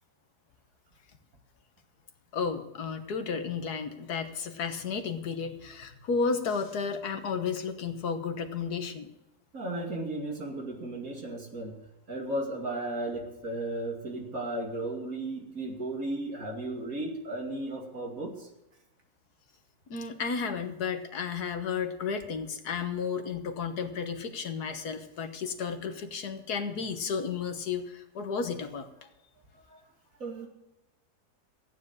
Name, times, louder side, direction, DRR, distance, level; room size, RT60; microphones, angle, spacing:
voice 1, 2.3-9.1 19.9-28.9, left 5 dB, 80° left, 7 dB, 1.8 m, -33 dB
voice 2, 9.5-11.8 12.1-18.5 29.7-29.8 30.1-30.5, right 1 dB, 60° right, 0 dB, 2.9 m, -35 dB
13.5 x 9.8 x 6.6 m, 0.93 s
omnidirectional pair, 1.7 m